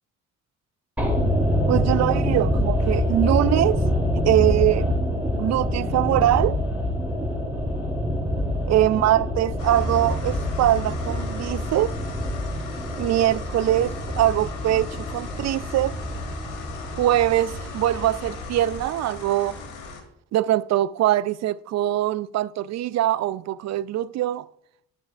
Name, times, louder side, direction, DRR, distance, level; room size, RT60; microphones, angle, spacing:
sound 1, 1.0-19.2 19.4-19.5, equal, 5° right, 3.1 m, -26 dB
voice 1, 1.7-3.8 4.2-4.9 5.3-6.6 8.7-12.0 13.0-16.0 17.0-19.6 20.3-24.5, right 13 dB, 60° right, 0.4 m, -22 dB
sound 2, 9.6-20.0, left 4 dB, 85° left, 1.8 m, -38 dB
12.0 x 6.4 x 2.4 m
cardioid pair, 90°, 30 cm